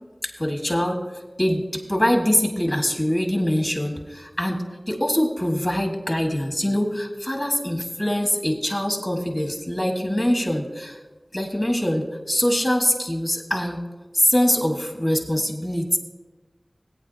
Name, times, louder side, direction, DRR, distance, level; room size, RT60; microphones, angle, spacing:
voice 1, 0.2-1.0 1.4-11.0 11.3-13.9 14.1-16.0, equal, 25° left, 2 dB, 1.7 m, -23 dB
18.5 x 8.9 x 2.8 m, 1.2 s
wide cardioid pair, 45°, 0 cm